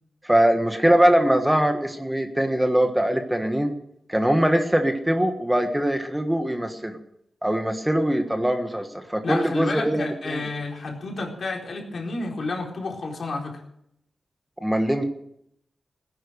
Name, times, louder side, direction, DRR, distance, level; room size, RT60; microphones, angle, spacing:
voice 1, 0.2-3.7 4.1-7.0 7.4-10.4 14.6-15.1, right 1 dB, 5° right, 6 dB, 1.4 m, -22 dB
voice 2, 9.2-13.6, left 3 dB, 60° left, 0 dB, 4.3 m, -30 dB
18.0 x 10.5 x 6.5 m, 0.75 s
wide cardioid pair, 100°, 0 cm